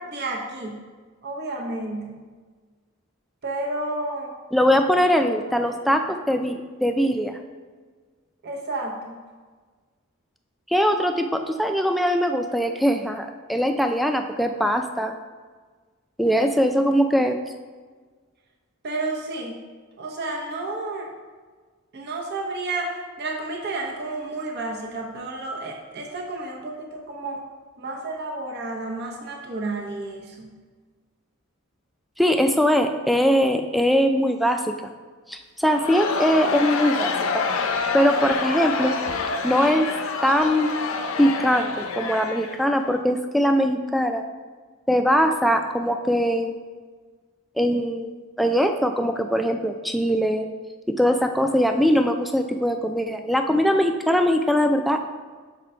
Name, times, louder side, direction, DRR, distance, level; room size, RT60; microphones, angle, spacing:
voice 1, 0.1-0.8 1.2-2.2 3.4-4.3 8.4-9.2 18.8-19.6 20.0-21.1 21.9-27.4 27.8-30.5, right 2 dB, 50° right, 0 dB, 0.8 m, -31 dB
voice 2, 4.5-7.4 10.7-15.1 16.2-17.4 32.2-34.9 35.3-37.4 37.9-38.9 39.4-39.9 40.2-40.7 41.2-44.2 44.9-46.6 47.6-50.5 50.9-55.1, equal, ahead, 5 dB, 0.3 m, -21 dB
Crowd, 35.7-43.0, left 4 dB, 70° left, 0.5 m, -27 dB
6.5 x 3.8 x 4.3 m, 1.5 s
head